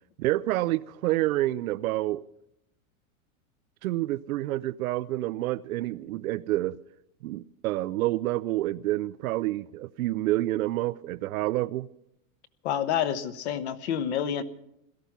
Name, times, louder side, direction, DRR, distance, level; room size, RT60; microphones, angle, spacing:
voice 1, 0.2-2.2 3.8-6.8 7.2-11.9, right 16 dB, 75° right, 0.6 m, -28 dB
voice 2, 12.6-14.4, left 9 dB, 50° left, 1.1 m, -28 dB
17.0 x 13.5 x 5.9 m
supercardioid pair, 175°, 42 cm